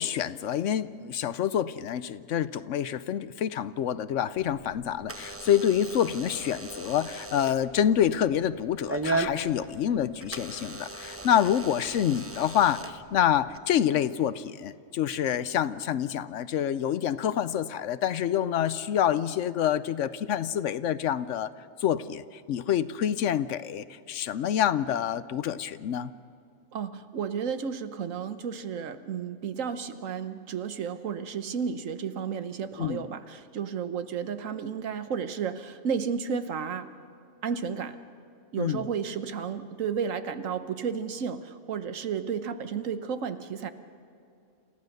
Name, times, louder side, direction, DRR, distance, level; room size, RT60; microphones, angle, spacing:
voice 1, 0.0-21.5 21.8-26.1 32.8-33.0 38.6-38.8, left 10 dB, 75° left, 15 dB, 1.0 m, -27 dB
Door / Alarm, 4.3-13.6, right 2 dB, 15° right, 0.7 m, -37 dB
voice 2, 26.7-36.9 37.4-38.0 38.5-43.7, right 6 dB, 80° right, 11 dB, 1.4 m, -32 dB
28.0 x 15.0 x 6.6 m, 2.6 s
omnidirectional pair, 1.3 m